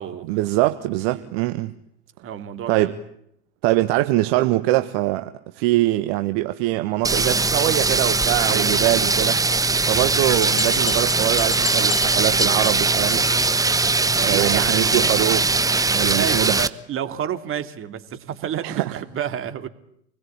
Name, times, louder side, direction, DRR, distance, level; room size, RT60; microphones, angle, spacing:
voice 1, 0.3-1.7 2.7-2.9 3.6-9.4 9.9-13.3 14.2-15.5 15.9-16.5 18.6-19.0, right 17 dB, 55° right, 1.4 m, -23 dB
voice 2, 2.2-2.9 8.5-8.7 14.2-15.3 16.1-19.7, right 9 dB, 35° right, 2.7 m, -30 dB
sound 1, 7.0-16.7, right 3 dB, 10° right, 1.1 m, -20 dB
sound 2, 10.4-13.2 13.4-13.7 14.0-14.1 14.4-14.5 14.8-14.9, left 10 dB, 80° left, 1.1 m, -32 dB
27.5 x 21.0 x 8.7 m
hypercardioid pair, 90°, 36 cm